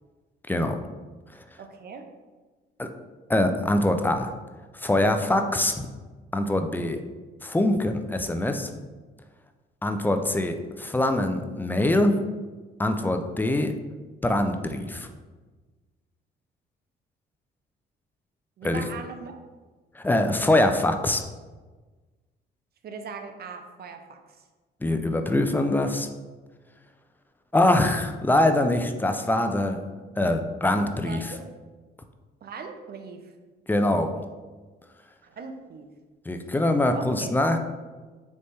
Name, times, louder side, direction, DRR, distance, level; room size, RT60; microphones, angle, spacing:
voice 1, 0.5-0.8 1.3-1.4 2.8-2.9 3.3-4.3 4.7-5.9 6.3-7.0 7.4-8.7 9.8-12.2 12.8-13.7 14.2-15.1 18.6-18.8 20.0-21.2 24.8-26.1 27.5-29.8 30.2-31.3 33.7-34.1 36.3-37.6, left 1 dB, 10° left, 6 dB, 0.4 m, -23 dB
voice 2, 1.6-2.1 18.6-19.4 22.8-24.4 31.0-31.5 32.4-33.3 35.2-35.9 36.9-37.3, right 5 dB, 50° right, 6 dB, 0.5 m, -40 dB
4.2 x 3.3 x 3.2 m, 1.3 s
cardioid pair, 90°, 20 cm